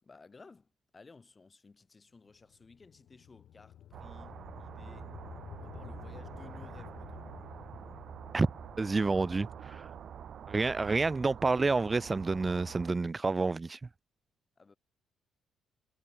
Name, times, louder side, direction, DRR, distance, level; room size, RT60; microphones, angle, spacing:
voice 1, 0.0-5.1 5.5-7.3 14.6-14.8, left 4 dB, 30° left, 6.6 m, -56 dB
sound 1, 2.2-12.5, left 11 dB, 75° left, 3.4 m, -52 dB
sound 2, 3.9-12.9, right 9 dB, 60° right, 0.6 m, -46 dB
voice 2, 8.8-9.9 10.5-13.8, right 3 dB, 25° right, 0.6 m, -29 dB
cardioid pair, 90°, 0 cm